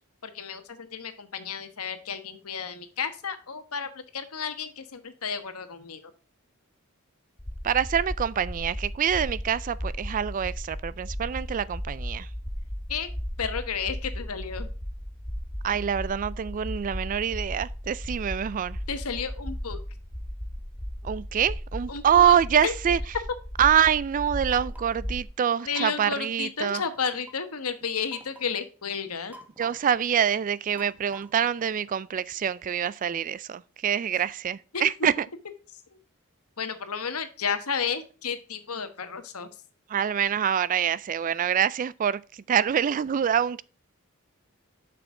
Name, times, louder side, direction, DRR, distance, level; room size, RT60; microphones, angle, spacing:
voice 1, 0.2-6.1 12.9-13.1 13.4-14.7 18.9-19.8 21.9-22.3 22.6-22.7 25.6-29.3 34.7-35.1 35.9-36.0 36.6-39.5, left 6 dB, 90° left, 1.1 m, -32 dB
sound 1, 7.4-25.2, equal, 20° left, 1.0 m, -36 dB
voice 2, 7.6-12.3 15.6-18.8 21.0-23.0 23.6-26.8 29.6-35.3 39.9-43.6, right 8 dB, 40° right, 0.3 m, -25 dB
sound 2, 24.5-25.0 25.7-26.2 26.7-27.3 28.1-28.5 29.3-30.0 30.8-31.6, right 2 dB, 10° right, 1.0 m, -48 dB
6.9 x 6.0 x 3.7 m
head